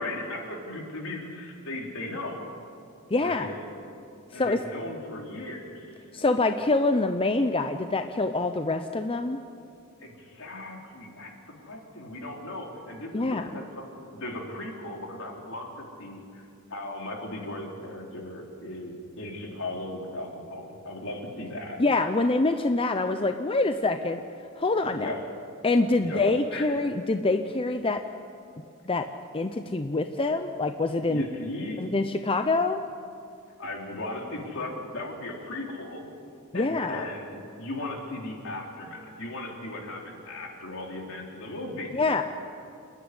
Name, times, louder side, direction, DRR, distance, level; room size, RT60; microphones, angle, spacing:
voice 1, 0.0-2.4 3.2-3.6 4.3-6.0 10.0-11.3 11.6-13.8 14.1-21.8 25.0-25.2 26.0-26.8 31.1-31.8 33.6-36.1 36.5-41.9, left 2 dB, 65° left, 0 dB, 3.6 m, -37 dB
voice 2, 3.1-3.5 4.3-4.6 6.1-9.4 13.1-13.5 21.8-24.2 24.6-25.1 25.6-28.0 28.8-29.0 29.3-31.2 31.8-32.8 36.5-37.0 41.9-42.2, left 2 dB, 25° left, 7 dB, 0.6 m, -25 dB
29.0 x 10.5 x 9.9 m, 2.5 s
head